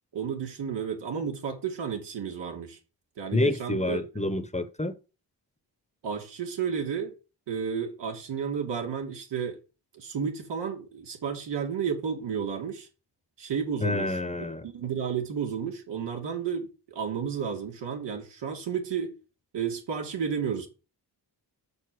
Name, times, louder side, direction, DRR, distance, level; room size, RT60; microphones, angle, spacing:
voice 1, 0.1-2.8 3.2-4.0 6.0-7.1 7.5-9.6 9.9-12.9 13.4-19.1 19.5-20.7, right 7 dB, 85° right, 2.6 m, -32 dB
voice 2, 3.3-4.9 13.8-14.6, left 2 dB, 15° left, 1.0 m, -28 dB
7.3 x 6.9 x 6.5 m
cardioid pair, 90°, 41 cm